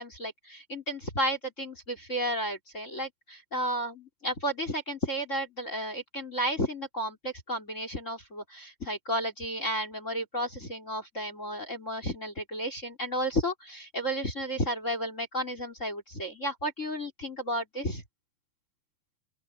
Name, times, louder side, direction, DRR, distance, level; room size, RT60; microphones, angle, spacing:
voice 1, 0.0-18.0, equal, 15° left, 3.5 m, -32 dB
open air
omnidirectional pair, 5.3 m